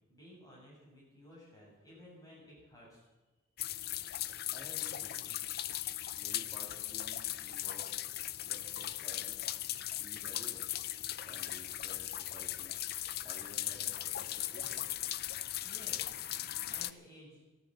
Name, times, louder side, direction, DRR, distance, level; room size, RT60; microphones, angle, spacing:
voice 1, 0.1-3.1 15.6-16.2 16.6-17.4, equal, 15° left, -5 dB, 7.2 m, -55 dB
sound 1, 3.6-16.9, left 13 dB, 50° left, 0.5 m, -38 dB
voice 2, 4.5-5.4 6.2-7.9 8.5-9.4 10.0-10.7 11.3-12.8 13.2-14.9, equal, ahead, -7 dB, 2.7 m, -54 dB
14.0 x 13.0 x 7.7 m, 1.1 s
head